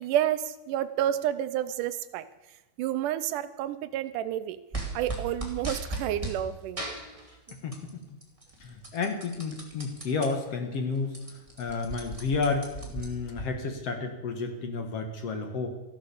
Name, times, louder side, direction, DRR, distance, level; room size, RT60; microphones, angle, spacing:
voice 1, 0.0-2.3 2.8-4.6 4.9-6.8, right 11 dB, 80° right, 13 dB, 2.1 m, -30 dB
sound 1, 4.7-6.4 6.8-7.9 8.2-10.3 10.7-10.8 11.0-13.4, right 2 dB, 10° right, 1.9 m, -37 dB
voice 2, 7.6-8.0 8.6-11.1 11.6-12.7 12.9-15.7, left 4 dB, 55° left, 5 dB, 2.1 m, -31 dB
14.0 x 12.5 x 6.8 m, 1.0 s
omnidirectional pair, 3.8 m